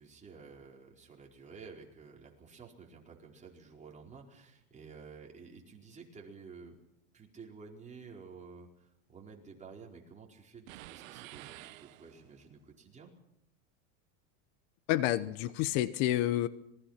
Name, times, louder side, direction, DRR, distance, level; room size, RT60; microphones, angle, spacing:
voice 1, 0.0-6.8 7.1-13.1, right 5 dB, 20° right, -1 dB, 4.7 m, -52 dB
sound 1, 10.7-12.5, right 18 dB, 80° right, 1.0 m, -50 dB
voice 2, 14.9-16.5, left 14 dB, 60° left, 15 dB, 1.0 m, -29 dB
26.5 x 20.5 x 5.8 m, 0.79 s
supercardioid pair, 135°, 40 cm